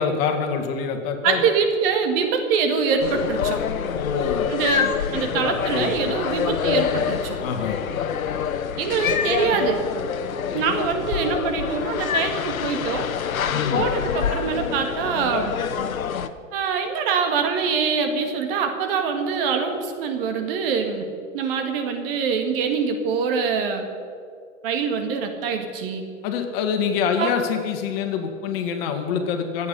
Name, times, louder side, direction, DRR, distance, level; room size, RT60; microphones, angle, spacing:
voice 1, 0.0-1.5 3.9-4.5 5.4-5.9 7.4-7.8 13.5-13.9 26.2-29.7, left 6 dB, 45° left, 5 dB, 2.0 m, -25 dB
voice 2, 1.2-3.6 4.5-7.4 8.8-9.8 10.5-13.1 13.7-15.6 16.5-21.1 21.3-23.9 24.6-26.0 27.2-27.3, right 5 dB, 45° right, 5 dB, 2.0 m, -24 dB
sound 1, 3.0-16.3, left 7 dB, 90° left, 1.0 m, -26 dB
26.0 x 8.6 x 5.6 m, 2.3 s
hypercardioid pair, 135°, 40 cm